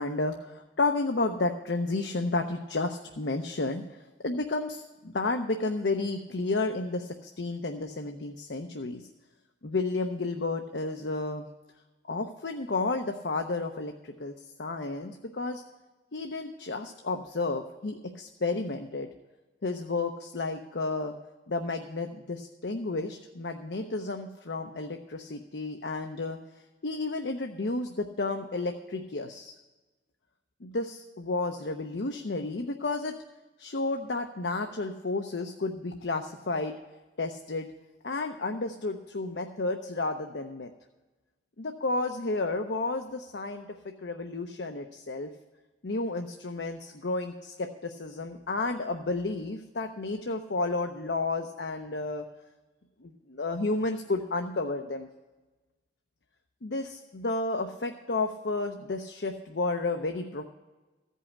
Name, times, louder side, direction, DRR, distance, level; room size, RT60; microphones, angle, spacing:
voice 1, 0.0-3.8 4.2-9.0 9.6-11.5 12.1-14.3 14.6-15.6 16.1-19.1 19.6-21.1 21.5-26.4 26.8-29.5 30.6-33.1 33.6-36.8 37.2-37.7 38.0-40.7 41.6-43.7 44.0-45.3 45.8-52.3 53.0-55.1 56.6-60.4, left 3 dB, 70° left, 5 dB, 0.7 m, -32 dB
15.0 x 5.6 x 8.5 m, 1.2 s
head